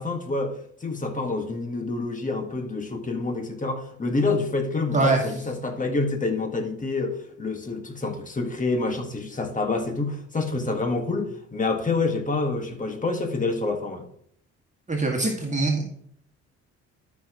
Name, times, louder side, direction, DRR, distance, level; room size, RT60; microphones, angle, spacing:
voice 1, 0.0-14.0, left 3 dB, 25° left, 1.7 m, -27 dB
voice 2, 14.9-15.8, right 2 dB, 25° right, 2.0 m, -23 dB
12.5 x 6.0 x 3.1 m
cardioid pair, 90°, 30 cm